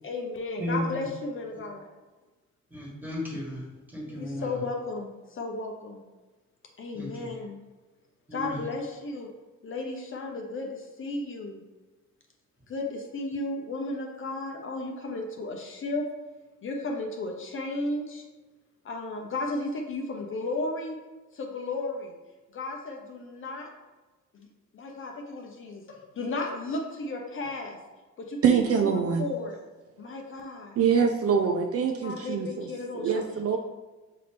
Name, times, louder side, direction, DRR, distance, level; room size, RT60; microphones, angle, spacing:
voice 1, 0.0-1.9 4.0-6.0 6.8-7.6 8.3-9.3 9.6-11.6 12.7-16.0 16.6-18.2 18.8-21.0 21.3-22.1 22.5-23.7 24.3-24.5 24.7-27.8 28.2-29.6 30.0-30.8 32.0-33.1, left 2 dB, 45° left, 2 dB, 0.6 m, -34 dB
voice 2, 0.6-1.0 2.7-4.6 6.9-7.3 8.3-8.6, left 1 dB, 5° right, -3 dB, 1.5 m, -34 dB
voice 3, 28.4-29.3 30.8-32.7 32.9-33.6, right 6 dB, 50° right, 3 dB, 0.4 m, -24 dB
5.6 x 2.6 x 3.4 m, 1.2 s
cardioid pair, 90°, 30 cm